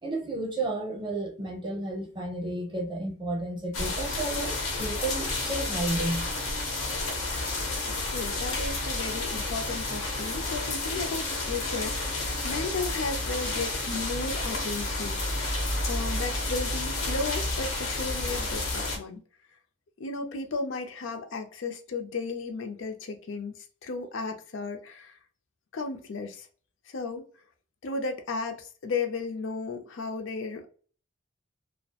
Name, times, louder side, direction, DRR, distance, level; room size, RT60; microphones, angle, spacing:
voice 1, 0.0-6.3, right 2 dB, 25° right, 0.7 m, -32 dB
sound 1, 3.7-19.0, left 2 dB, 90° left, 0.8 m, -31 dB
voice 2, 7.9-15.5 15.9-19.2 20.0-25.2 25.7-26.5 26.9-27.3 27.8-30.7, left 3 dB, 70° left, 0.5 m, -34 dB
2.3 x 2.1 x 2.7 m
head